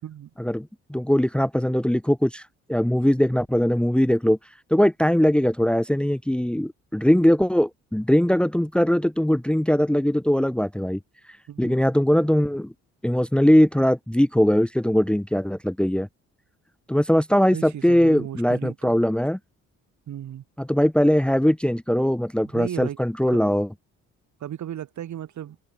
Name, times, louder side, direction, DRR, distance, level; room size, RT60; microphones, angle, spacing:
voice 1, 0.4-2.4 2.7-4.4 4.7-11.0 11.6-12.7 13.0-16.1 16.9-19.4 20.6-23.7, equal, 5° left, 1.2 m, -21 dB
voice 2, 17.5-18.9 20.1-20.4 22.4-23.0 23.3-23.4 24.4-25.6, right 11 dB, 70° right, 6.4 m, -35 dB
cardioid pair, 90°, 30 cm